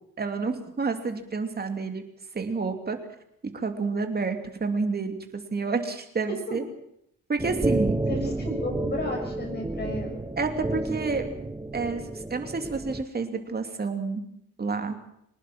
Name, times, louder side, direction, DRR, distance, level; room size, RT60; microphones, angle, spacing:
voice 1, 0.2-2.0 2.3-3.0 3.5-6.6 7.3-8.0 10.4-11.3 11.7-14.2 14.6-15.0, right 4 dB, 30° right, 5 dB, 2.8 m, -29 dB
sound 1, 7.4-13.0, right 2 dB, 10° right, 1.1 m, -30 dB
voice 2, 8.0-10.2, left 2 dB, 30° left, 3 dB, 6.7 m, -33 dB
25.0 x 19.5 x 6.0 m, 0.75 s
wide cardioid pair, 140°, 32 cm